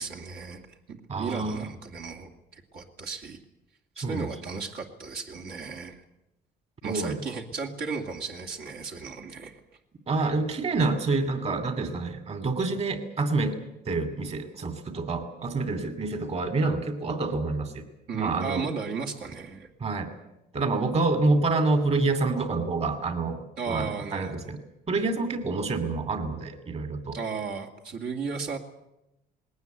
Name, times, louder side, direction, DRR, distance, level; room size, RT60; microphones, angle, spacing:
voice 1, 0.0-3.4 4.0-6.0 6.8-9.6 18.1-19.7 23.6-24.5 27.1-28.6, right 5 dB, 65° right, 1 dB, 2.6 m, -35 dB
voice 2, 1.1-1.6 4.0-4.3 6.8-7.2 10.1-13.6 13.8-17.8 18.1-18.6 19.8-20.1 20.5-24.6 24.9-27.2, right 3 dB, 40° right, 10 dB, 2.7 m, -27 dB
20.0 x 18.0 x 9.4 m, 0.90 s
cardioid pair, 110°, 17 cm